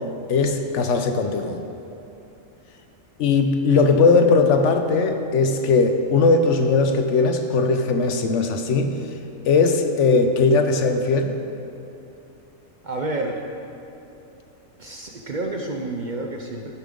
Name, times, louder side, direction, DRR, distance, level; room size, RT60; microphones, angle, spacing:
voice 1, 0.3-1.6 3.2-9.0 9.5-11.4, left 4 dB, 70° left, 6 dB, 1.0 m, -19 dB
voice 2, 12.8-13.4 14.8-16.7, right 2 dB, 45° right, 1 dB, 0.6 m, -29 dB
15.5 x 7.1 x 3.8 m, 2.8 s
omnidirectional pair, 1.4 m